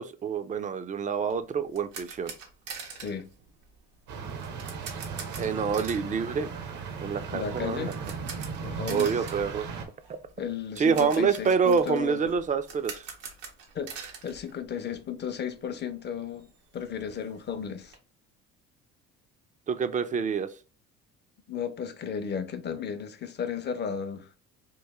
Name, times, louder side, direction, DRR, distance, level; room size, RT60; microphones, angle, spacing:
voice 1, 0.0-2.3 5.4-6.5 7.0-7.9 8.9-9.7 10.8-13.0 19.7-20.5, right 6 dB, 25° right, 0.4 m, -27 dB
sound 1, 1.3-15.3 15.5-15.7 16.1-16.2 16.4-18.0, right 5 dB, 90° right, 1.0 m, -45 dB
voice 2, 2.9-3.3 7.3-8.0 8.6-9.2 10.4-12.3 13.7-13.9 14.2-16.5 16.7-18.0 21.5-24.4, left 7 dB, 35° left, 0.5 m, -34 dB
sound 2, 4.1-9.9, right 5 dB, 70° right, 0.9 m, -37 dB
3.1 x 2.5 x 3.5 m
supercardioid pair, 90°, 30 cm